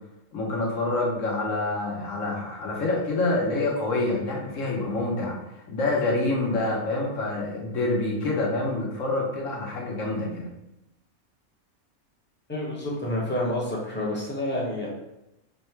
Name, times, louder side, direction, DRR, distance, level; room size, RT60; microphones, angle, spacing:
voice 1, 0.3-5.4 5.7-10.4, left 2 dB, 65° left, -2 dB, 1.3 m, -27 dB
voice 2, 12.5-14.9, left 1 dB, 10° left, -4 dB, 0.7 m, -28 dB
3.5 x 2.2 x 4.4 m, 0.88 s
omnidirectional pair, 1.5 m